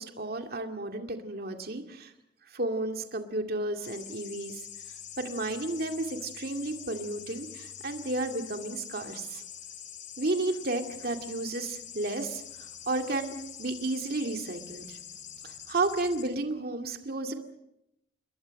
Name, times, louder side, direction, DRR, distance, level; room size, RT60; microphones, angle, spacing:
voice 1, 0.0-2.1 2.5-4.7 5.2-9.4 10.2-15.0 15.4-17.3, right 2 dB, 55° right, 5 dB, 2.2 m, -32 dB
sound 1, 3.8-16.3, left 9 dB, 45° left, 3.4 m, -45 dB
28.0 x 21.5 x 6.4 m, 0.83 s
head